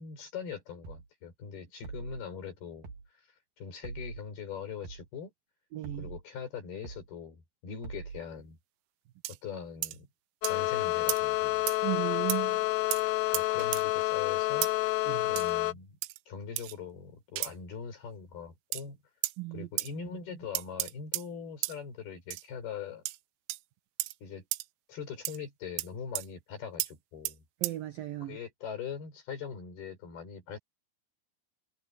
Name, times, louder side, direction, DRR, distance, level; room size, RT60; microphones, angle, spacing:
voice 1, 0.0-3.3 3.6-5.3 6.0-8.6 9.3-10.1 10.4-11.7 13.3-14.7 15.3-16.0 16.3-19.0 19.5-23.0 24.2-24.4 24.9-27.4 28.2-30.6, left 6 dB, 50° left, 6.4 m, -42 dB
sound 1, 0.8-1.1 1.8-2.2 2.8-3.1 3.8-4.2 4.8-5.1 5.8-6.2 6.8-7.1 7.8-8.2, right 5 dB, 50° right, 3.7 m, -43 dB
voice 2, 5.7-6.1 11.8-12.7 15.1-15.3 19.4-19.7 27.6-28.4, right 17 dB, 70° right, 2.2 m, -36 dB
sound 2, 9.2-9.4 9.8-10.0 10.4-10.6 11.1-11.2 11.7-11.8 12.3-12.4 12.9-13.0 13.3-13.8 14.6-14.7 15.4-15.5 16.0-16.2 16.6-16.8 17.4-17.5 18.7-18.8 19.2-19.4 19.8-19.9 20.6-21.3 21.6-21.8 22.3-22.5 23.1-23.2 23.5-23.6 24.0-24.1 24.5-24.7 25.3-25.4 25.8-25.9 26.2-26.3 26.8-26.9 27.3-27.4 27.6-27.7, right 19 dB, 90° right, 3.5 m, -34 dB
sound 3, 10.4-15.7, left 20 dB, 85° left, 3.2 m, -29 dB
omnidirectional pair, 5.9 m